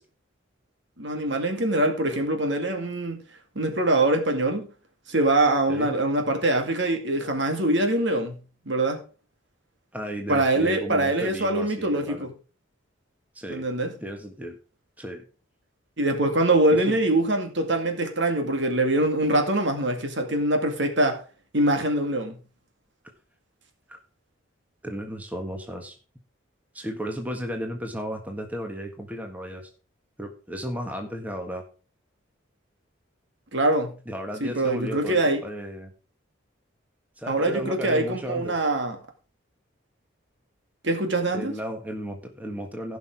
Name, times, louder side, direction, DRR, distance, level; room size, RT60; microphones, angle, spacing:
voice 1, 1.0-3.2 3.6-4.7 5.1-9.0 10.3-12.3 13.5-13.9 16.0-21.2 21.5-22.4 33.5-34.0 34.4-35.4 37.3-39.0 40.8-41.5, right 1 dB, 65° right, 2.2 m, -23 dB
voice 2, 9.9-12.3 13.3-13.7 14.0-14.6 15.0-15.2 16.7-17.0 23.9-24.0 24.8-26.0 26.7-29.7 30.2-31.6 34.1-35.9 37.2-38.6 41.3-43.0, equal, 10° right, 1.6 m, -34 dB
16.0 x 6.0 x 4.8 m
head